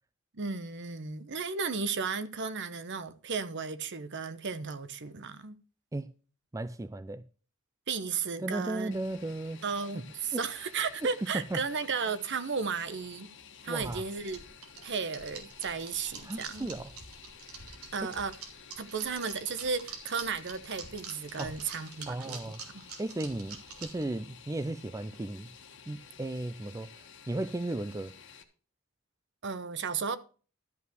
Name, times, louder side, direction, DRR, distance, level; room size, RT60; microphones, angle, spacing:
voice 1, 0.3-5.6 7.9-8.9 9.6-13.3 13.6-14.4 14.8-16.8 17.9-18.3 18.8-22.8 29.4-30.2, right 5 dB, 55° right, 0.9 m, -34 dB
voice 2, 6.5-7.2 8.4-9.6 10.3-10.4 11.3-11.6 13.7-14.0 16.2-16.9 18.0-18.1 21.4-21.6 22.1-22.6 23.0-25.5 25.9-28.1, right 2 dB, 15° right, 0.4 m, -35 dB
Fixed-wing aircraft airplane, 8.9-28.4, left 6 dB, 60° left, 1.4 m, -53 dB
sound 1, 13.8-24.0, right 5 dB, 85° right, 2.7 m, -46 dB
13.0 x 5.6 x 6.3 m
head